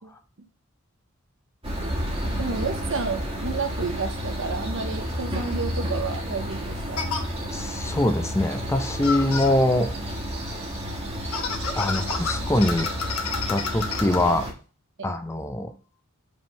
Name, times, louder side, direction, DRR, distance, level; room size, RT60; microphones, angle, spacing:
sound 1, 1.6-14.5, equal, 25° right, 1.6 m, -31 dB
voice 1, 2.4-7.0 15.0-15.1, right 4 dB, 60° right, 8 dB, 0.8 m, -31 dB
sound 2, 5.5-5.6 7.0-7.2 9.0-9.5 11.3-14.2, left 5 dB, 85° left, 1.1 m, -30 dB
voice 2, 7.5-9.9 11.7-12.9 13.5-14.5 15.0-15.7, left 1 dB, 15° left, 8 dB, 0.5 m, -23 dB
5.2 x 3.6 x 5.4 m, 0.38 s
head